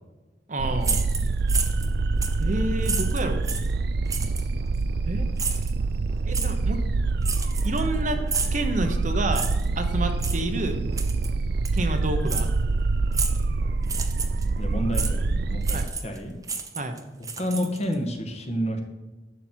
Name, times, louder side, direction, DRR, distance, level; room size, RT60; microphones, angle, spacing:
voice 1, 0.5-1.1 2.4-3.5 5.1-5.3 6.2-6.8 7.6-8.2 8.5-9.5 9.8-10.8 11.7-12.5 15.7-15.9 16.7-16.9, right 1 dB, 45° right, 6 dB, 1.0 m, -29 dB
sound 1, 0.6-15.9, right 3 dB, 60° right, 0.4 m, -26 dB
sound 2, 0.8-1.9 2.2-2.4 2.8-3.7 4.1-4.5 5.4-5.7 6.3-6.5 7.2-7.9 8.3-8.6 9.3-9.7 10.2-10.4 11.0-11.3 11.6-11.8 12.3-12.5 13.1-13.4 13.8-14.4 14.9-15.1 15.6-16.2 16.4-17.9, right 5 dB, 20° right, 0.9 m, -30 dB
voice 2, 14.6-16.3 17.4-18.8, equal, 40° left, 3 dB, 1.5 m, -29 dB
11.5 x 7.3 x 4.5 m, 1.2 s
head